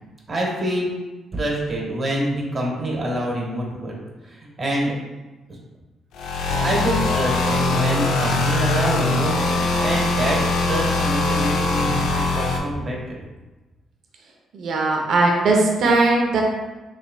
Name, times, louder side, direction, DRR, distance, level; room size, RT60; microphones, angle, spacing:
voice 1, 0.3-0.9 1.3-3.9 4.3-4.9 5.5-5.6 6.6-13.2, right 1 dB, 40° right, -2 dB, 1.3 m, -26 dB
sound 1, 6.1-12.6, left 3 dB, 90° left, 0.6 m, -21 dB
voice 2, 14.5-16.4, right 2 dB, 70° right, 0 dB, 0.8 m, -19 dB
5.1 x 3.2 x 2.3 m, 1.2 s
cardioid pair, 90°, 0 cm